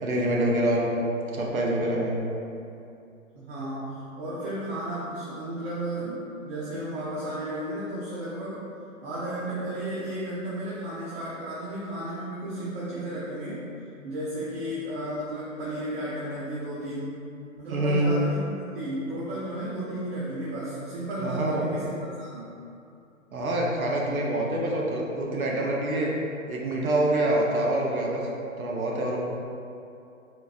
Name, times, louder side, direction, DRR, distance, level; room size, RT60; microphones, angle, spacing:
voice 1, 0.0-0.9 1.3-2.2 17.7-18.1 21.2-21.7 23.3-26.1 26.5-28.3 28.6-29.2, right 1 dB, 85° right, -2 dB, 0.8 m, -26 dB
voice 2, 3.3-8.6 9.0-13.6 14.0-17.1 17.6-22.5, right 1 dB, 50° right, -9 dB, 0.8 m, -33 dB
3.9 x 2.6 x 2.4 m, 2.6 s
hypercardioid pair, 135°, 41 cm